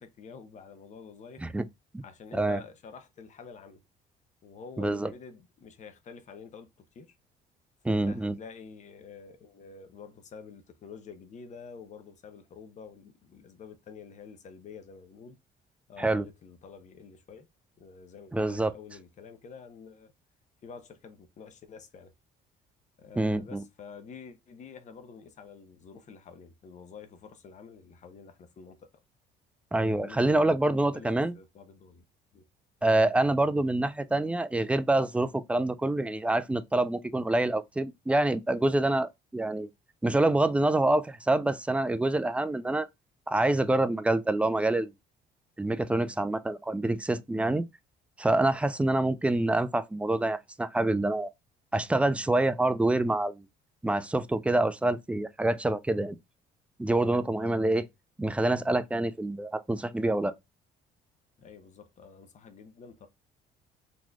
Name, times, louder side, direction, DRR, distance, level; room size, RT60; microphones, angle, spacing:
voice 1, 0.0-1.4 2.0-3.8 4.4-6.7 6.9-7.1 7.9-15.4 15.9-17.5 17.8-20.1 20.6-22.1 23.0-28.9 29.8-32.0 32.3-32.4 32.8-32.9 57.4-57.5 61.4-63.1, left 6 dB, 45° left, 1.0 m, -48 dB
voice 2, 4.8-5.1 7.8-8.4 16.0-16.3 18.3-18.7 23.2-23.6 29.7-31.3 32.8-39.7 40.0-42.9 43.3-44.9 45.6-47.6 48.2-51.3 51.7-53.4 53.8-56.2 56.8-57.8 58.2-60.3, right 2 dB, 5° right, 0.4 m, -26 dB
4.0 x 3.0 x 2.3 m
cardioid pair, 110°, 17 cm